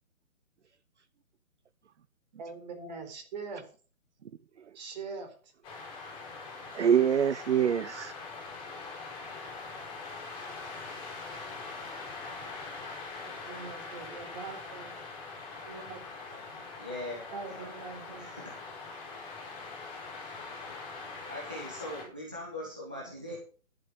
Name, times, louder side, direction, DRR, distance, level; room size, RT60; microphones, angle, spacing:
voice 1, 2.4-3.6 4.7-5.5 13.2-15.0 15.6-16.0 17.3-18.3, right 4 dB, 30° right, 4.0 m, -42 dB
voice 2, 4.2-4.8 6.7-8.1, right 8 dB, 55° right, 0.7 m, -26 dB
sound 1, 5.6-22.0, left 4 dB, 10° left, 5.5 m, -43 dB
voice 3, 16.3-17.7 18.2-18.5 21.3-23.4, left 1 dB, 5° right, 0.6 m, -41 dB
11.5 x 10.5 x 5.0 m
hypercardioid pair, 160°, 43 cm